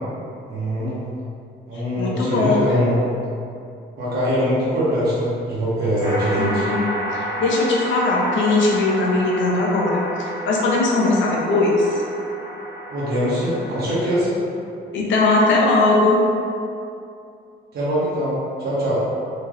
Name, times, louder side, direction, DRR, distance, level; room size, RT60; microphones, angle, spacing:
voice 1, 0.4-1.0 1.7-3.0 4.0-6.7 12.9-14.3 17.7-19.0, equal, 55° right, -9 dB, 0.9 m, -22 dB
voice 2, 1.7-2.6 6.4-6.9 7.1-12.0 14.9-16.2, left 2 dB, 75° left, -3 dB, 0.7 m, -19 dB
sound 1, 6.0-13.9, equal, 75° right, 1.1 m, -30 dB
3.1 x 2.9 x 2.4 m, 2.6 s
cardioid pair, 90°, 20 cm